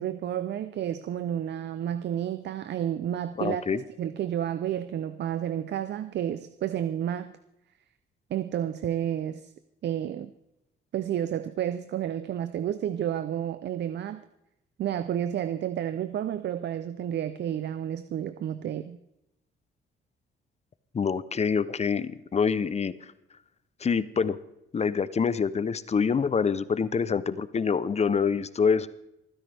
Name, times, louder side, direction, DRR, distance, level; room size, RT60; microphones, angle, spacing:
voice 1, 0.0-7.3 8.3-9.5 9.8-10.3 10.9-14.2 14.8-19.0, right 10 dB, 60° right, 12 dB, 0.6 m, -31 dB
voice 2, 3.4-3.8 20.9-22.9 23.8-24.4 24.7-28.9, left 6 dB, 35° left, 16 dB, 0.7 m, -26 dB
26.5 x 10.0 x 3.4 m, 0.87 s
cardioid pair, 90°, 20 cm